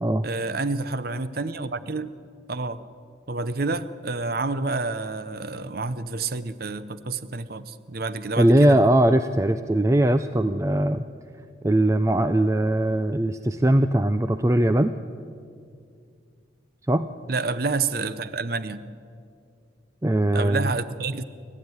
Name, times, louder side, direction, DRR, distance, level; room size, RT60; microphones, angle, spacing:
voice 1, 0.2-2.1 2.5-2.9 3.3-8.8 17.3-18.9 20.3-21.2, right 3 dB, 50° right, 13 dB, 0.7 m, -29 dB
voice 2, 8.4-11.0 11.6-14.9 16.9-17.1 20.0-20.7, right 1 dB, 15° right, 10 dB, 0.5 m, -20 dB
29.5 x 13.5 x 9.6 m, 2.4 s
head